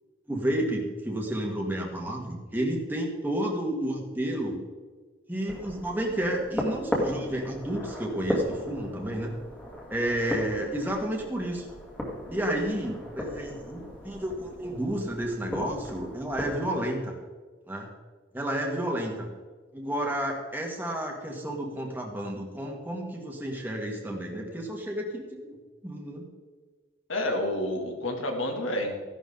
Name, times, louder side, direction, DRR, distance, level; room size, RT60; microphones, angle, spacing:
voice 1, 0.3-4.6 5.3-9.4 9.9-11.7 12.3-17.1 17.7-17.9 18.3-19.3 19.7-25.6 25.8-26.3, right 1 dB, 10° right, 0 dB, 1.9 m, -31 dB
sound 1, 5.5-16.7, equal, 5° left, 2.3 m, -36 dB
voice 2, 27.1-29.0, left 1 dB, 80° left, 2 dB, 2.7 m, -29 dB
15.5 x 11.5 x 3.9 m, 1.4 s
head